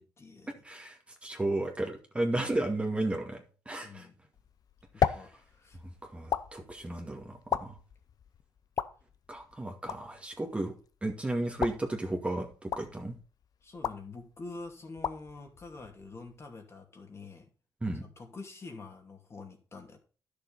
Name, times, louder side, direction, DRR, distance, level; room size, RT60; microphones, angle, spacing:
voice 1, 0.0-0.5 3.8-4.2 4.9-5.8 13.6-17.5 18.0-20.0, left 3 dB, 35° left, 3 dB, 2.5 m, -46 dB
voice 2, 0.6-4.1 5.0-5.3 6.0-7.8 9.3-10.7 11.0-13.2 17.8-18.0, right 2 dB, 15° right, 3 dB, 2.0 m, -34 dB
sound 1, 4.3-16.5, left 8 dB, 55° left, 0.7 m, -38 dB
11.0 x 6.8 x 4.1 m, 0.38 s
cardioid pair, 85°, 7 cm